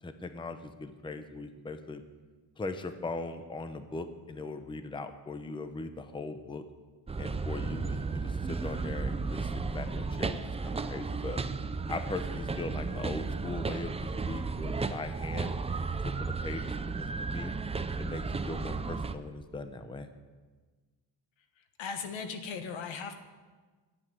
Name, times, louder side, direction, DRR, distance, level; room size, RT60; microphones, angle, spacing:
voice 1, 0.0-2.0 2.6-6.6 7.2-11.4 11.9-15.5 16.0-17.5 18.0-20.1, left 3 dB, 10° left, 9 dB, 0.7 m, -40 dB
sound 1, 7.1-19.1, right 4 dB, 15° right, 0.4 m, -34 dB
voice 2, 21.6-23.2, left 5 dB, 80° left, 7 dB, 1.5 m, -38 dB
10.5 x 8.3 x 9.4 m, 1.4 s
cardioid pair, 135°, 46 cm